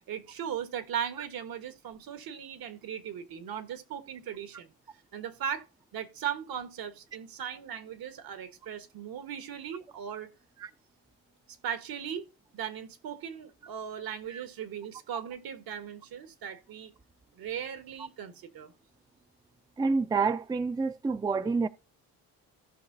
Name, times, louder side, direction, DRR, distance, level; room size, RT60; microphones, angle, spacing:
voice 1, 0.1-4.7 5.1-5.7 5.9-10.3 11.6-12.2 12.5-16.9 17.3-18.7, right 8 dB, 70° right, 1.4 m, -38 dB
voice 2, 19.8-21.7, right 4 dB, 10° right, 0.4 m, -28 dB
16.5 x 5.7 x 2.7 m
supercardioid pair, 75°, 37 cm